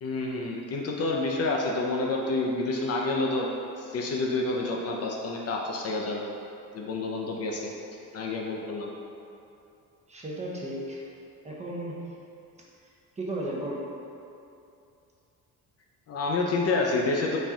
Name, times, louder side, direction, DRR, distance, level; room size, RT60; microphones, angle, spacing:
voice 1, 0.0-3.5 3.8-6.2 6.7-7.7 8.1-8.9 16.1-17.4, left 3 dB, 50° left, -1 dB, 0.4 m, -28 dB
voice 2, 10.1-11.0 11.4-12.0 13.2-13.8, right 1 dB, 20° right, -4 dB, 0.6 m, -34 dB
4.2 x 2.3 x 3.5 m, 2.6 s
cardioid pair, 115°, 34 cm